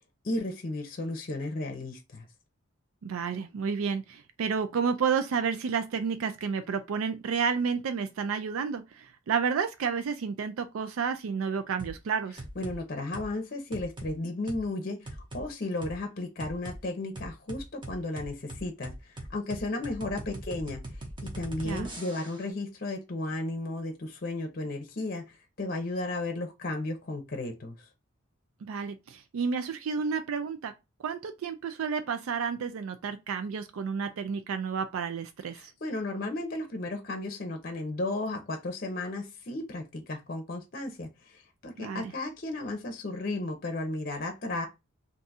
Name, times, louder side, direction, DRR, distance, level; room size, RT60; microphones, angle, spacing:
voice 1, 0.2-2.3 12.6-20.8 21.2-27.9 35.5-44.7, left 2 dB, 45° left, 0.6 m, -34 dB
voice 2, 3.0-12.4 21.6-21.9 28.6-30.7 31.0-35.7 41.8-42.1, right 6 dB, 85° right, 0.4 m, -31 dB
sound 1, 11.8-12.0 12.4-12.8 13.1-13.3 13.7-14.1 14.5-14.6 15.1-15.5 15.8-16.0 16.4-16.8 17.2-22.5, right 1 dB, 25° right, 0.7 m, -40 dB
2.6 x 2.3 x 4.0 m
head